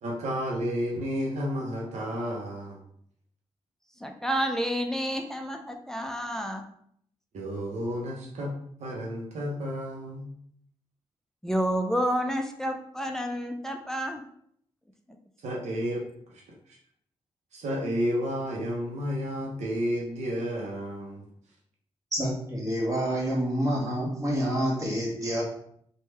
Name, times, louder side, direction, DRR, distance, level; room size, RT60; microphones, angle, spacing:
voice 1, 0.0-2.8 7.3-8.5 8.8-10.3 15.4-16.0 16.3-16.4 17.5-21.3, equal, 85° right, -1 dB, 0.6 m, -31 dB
voice 2, 4.0-6.7 11.4-14.2, equal, 5° left, 4 dB, 0.4 m, -29 dB
voice 3, 22.1-25.4, equal, 25° right, -3 dB, 1.2 m, -28 dB
3.2 x 2.2 x 3.1 m, 0.66 s
cardioid pair, 75°, 11 cm